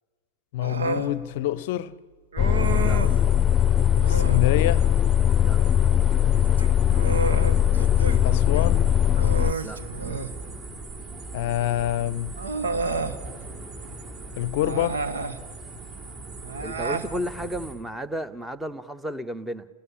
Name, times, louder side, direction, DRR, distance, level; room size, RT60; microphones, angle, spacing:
voice 1, 0.5-1.9 4.1-4.8 8.2-8.9 11.3-12.3 14.4-15.0, left 14 dB, 50° left, 0.7 m, -26 dB
Human voice, 0.6-1.1 2.3-3.2 4.0-4.5 6.4-8.2 8.5-8.7 9.2-10.4 11.6-11.7 12.4-13.2 14.6-15.4 16.4-17.1, right 4 dB, 70° right, 1.6 m, -30 dB
sound 1, 2.4-9.5, left 10 dB, 20° left, 0.8 m, -20 dB
sound 2, 2.6-17.7, right 3 dB, 35° right, 4.8 m, -39 dB
voice 2, 16.6-19.7, equal, 5° right, 1.0 m, -33 dB
29.5 x 19.5 x 8.8 m
figure-of-eight pair, 90°, 0 cm